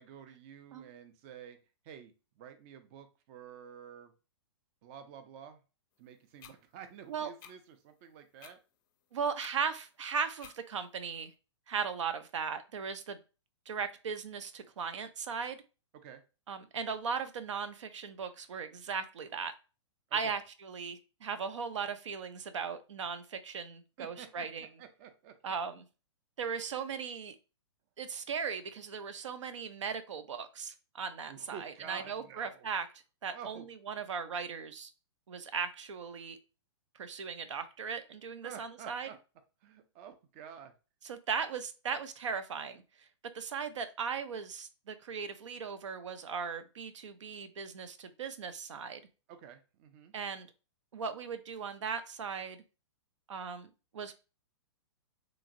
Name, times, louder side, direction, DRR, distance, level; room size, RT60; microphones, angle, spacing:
voice 1, 0.0-1.6 1.8-4.1 4.8-5.6 6.0-8.6 16.0-16.2 20.1-20.4 24.0-25.4 31.3-32.7 33.3-33.7 38.4-39.2 39.6-40.7 49.3-50.1, right 8 dB, 30° right, 9 dB, 0.3 m, -50 dB
sound 1, 6.4-6.6 7.4-7.5 8.4-8.6 9.4-9.5 10.4-10.6, left 8 dB, 40° left, 0.4 m, -51 dB
voice 2, 9.1-11.3 11.7-13.2 13.7-15.6 16.5-19.5 20.1-24.7 25.4-25.8 26.4-27.4 28.0-32.9 33.2-34.9 35.3-36.4 36.9-39.1 41.0-42.8 43.3-49.0 50.1-50.5 50.9-52.6 53.3-54.1, right 6 dB, 85° right, 11 dB, 0.5 m, -38 dB
3.0 x 2.5 x 2.5 m, 0.32 s
hypercardioid pair, 150°, 15 cm